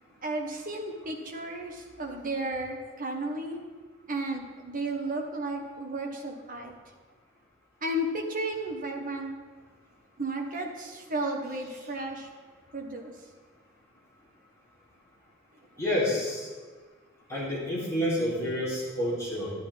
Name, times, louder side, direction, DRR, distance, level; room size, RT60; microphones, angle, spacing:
voice 1, 0.2-3.6 4.1-6.7 7.8-9.3 10.2-12.3 12.7-13.1, right 1 dB, 45° right, 2 dB, 1.4 m, -33 dB
voice 2, 15.8-16.5 17.3-19.5, left 1 dB, 15° left, -8 dB, 3.7 m, -29 dB
12.0 x 10.5 x 3.7 m, 1.4 s
head